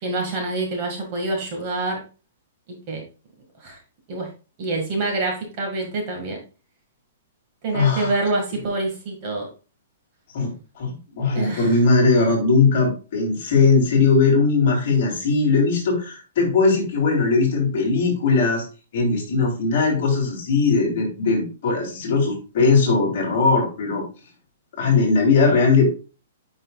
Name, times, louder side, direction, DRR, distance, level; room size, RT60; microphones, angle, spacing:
voice 1, 0.0-2.0 2.9-3.0 3.6-3.8 4.1-4.3 4.6-6.4 7.6-9.5 11.3-11.8, right 2 dB, 30° right, 1 dB, 1.8 m, -26 dB
voice 2, 7.7-8.1 10.3-18.6 18.9-24.0 24.8-25.9, left 4 dB, 40° left, -1 dB, 2.9 m, -19 dB
9.3 x 5.4 x 2.3 m, 0.33 s
hypercardioid pair, 180°, 0 cm